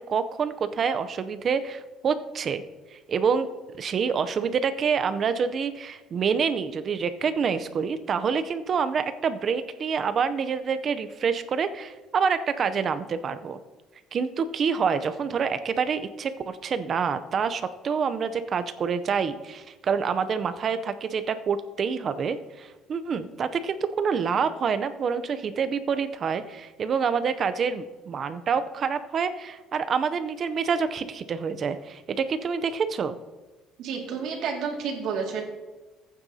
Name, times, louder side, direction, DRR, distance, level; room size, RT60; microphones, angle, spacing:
voice 1, 0.0-2.6 2.9-3.5 3.8-13.6 14.1-33.2, right 6 dB, 40° right, 11 dB, 0.6 m, -27 dB
voice 2, 33.8-35.4, right 6 dB, 65° right, 1 dB, 2.2 m, -30 dB
14.5 x 9.0 x 2.8 m, 1.2 s
cardioid pair, 125°, 0 cm